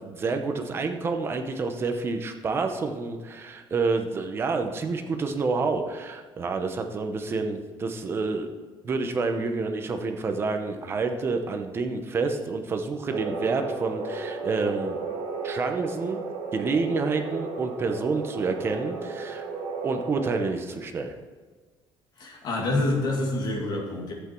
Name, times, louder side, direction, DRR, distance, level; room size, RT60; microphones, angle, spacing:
voice 1, 0.0-8.5 8.8-15.0 15.4-16.3 16.5-19.5 19.8-21.1, right 4 dB, 25° right, 6 dB, 0.8 m, -28 dB
sound 1, 13.1-20.4, right 4 dB, 60° right, 2.1 m, -34 dB
voice 2, 22.2-24.1, left 2 dB, 50° left, -1 dB, 2.3 m, -27 dB
11.5 x 8.3 x 4.5 m, 1.4 s
cardioid pair, 180°, 10 cm